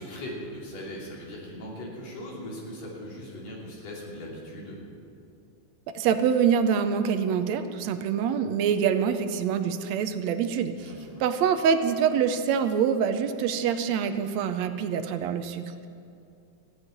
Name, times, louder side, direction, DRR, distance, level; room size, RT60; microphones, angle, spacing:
voice 1, 0.0-4.8 10.8-11.2, equal, 60° left, -3 dB, 4.1 m, -39 dB
voice 2, 6.0-10.7 11.2-15.9, right 7 dB, 75° right, 8 dB, 1.7 m, -25 dB
15.0 x 8.0 x 9.9 m, 2.5 s
omnidirectional pair, 3.5 m